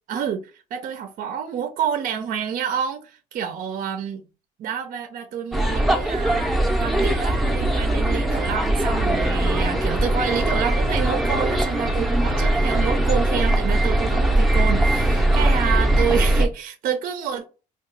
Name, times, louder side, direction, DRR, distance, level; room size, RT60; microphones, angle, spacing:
voice 1, 0.1-4.2 4.6-6.5 6.8-17.5, right 8 dB, 55° right, 0.4 m, -28 dB
sound 1, 5.5-16.5, right 1 dB, ahead, 0.5 m, -20 dB
2.7 x 2.2 x 3.9 m
cardioid pair, 110°, 17 cm